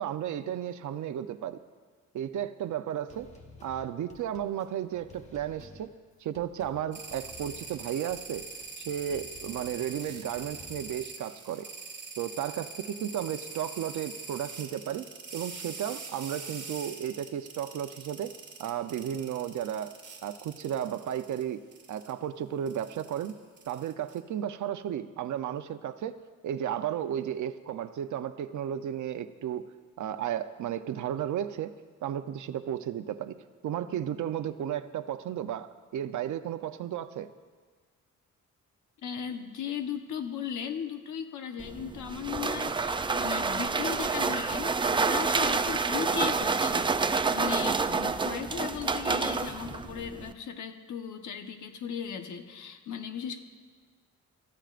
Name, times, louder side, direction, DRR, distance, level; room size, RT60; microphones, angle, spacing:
voice 1, 0.0-1.6 2.1-3.3 3.6-5.9 6.2-8.4 8.8-11.7 12.2-15.1 15.3-18.3 18.6-19.9 20.2-21.6 21.9-23.3 23.7-26.2 26.4-29.6 30.0-31.7 32.0-33.4 33.6-37.3, right 10 dB, 80° right, 10 dB, 0.7 m, -34 dB
sound 1, 3.1-11.0, left 3 dB, 25° left, 1.3 m, -53 dB
sound 2, 6.9-21.4 21.7-22.1 22.7-24.2, right 5 dB, 35° right, 2.1 m, -43 dB
voice 2, 39.0-53.4, left 7 dB, 85° left, 6 dB, 1.2 m, -37 dB
sound 3, 41.6-50.3, right 4 dB, 15° right, 0.4 m, -28 dB
28.0 x 14.5 x 2.5 m, 1.5 s
wide cardioid pair, 155°, 29 cm